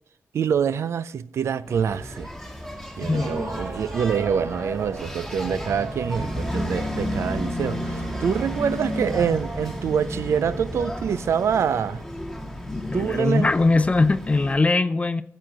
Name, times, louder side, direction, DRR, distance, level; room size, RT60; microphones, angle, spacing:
voice 1, 0.3-2.3 3.0-12.0 12.9-13.5, right 7 dB, 80° right, 0.4 m, -25 dB
Engine, 1.7-14.7, left 1 dB, ahead, 1.8 m, -33 dB
voice 2, 3.0-3.6 12.7-15.2, left 3 dB, 30° left, 0.5 m, -21 dB
sound 1, 3.1-11.4, right 3 dB, 55° right, 1.3 m, -38 dB
13.5 x 7.6 x 3.8 m
cardioid pair, 75°, 5 cm